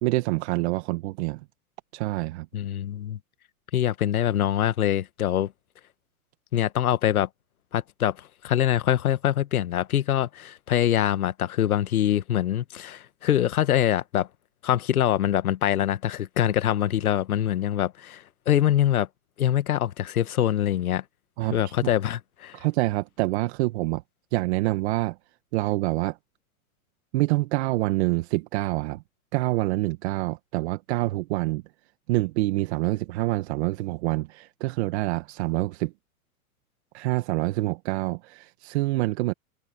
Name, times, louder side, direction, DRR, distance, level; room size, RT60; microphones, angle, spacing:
voice 1, 0.0-1.4 1.9-2.5 21.4-21.7 22.5-24.0 24.3-25.2 25.5-26.2 27.1-29.0 29.3-31.6 32.1-35.9 36.9-39.3, right 20 dB, 50° right, 1.4 m, -26 dB
voice 2, 2.5-3.2 3.7-5.5 6.5-7.3 7.7-14.3 14.6-19.1 19.4-21.0 21.5-22.6, left 11 dB, 85° left, 1.5 m, -24 dB
hypercardioid pair, 140°, 43 cm